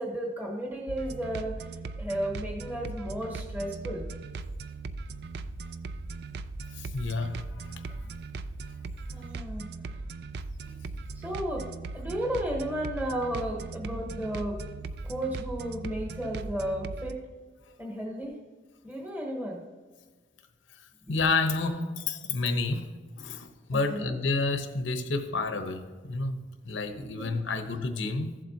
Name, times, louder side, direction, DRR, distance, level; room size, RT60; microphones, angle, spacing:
voice 1, 0.0-1.6 2.0-4.1 9.1-9.7 10.7-10.8 11.1-11.7 11.9-14.6 15.0-17.2 17.8-18.4 18.8-19.6 21.1-21.2 23.7-24.1 27.1-27.6, right 1 dB, 10° right, -1 dB, 1.1 m, -33 dB
sound 1, 0.9-17.1, right 3 dB, 55° right, 0.4 m, -39 dB
voice 2, 6.7-8.1 20.8-22.9 23.2-28.4, left 3 dB, 85° left, 7 dB, 0.9 m, -30 dB
15.0 x 7.5 x 2.8 m, 1.4 s
head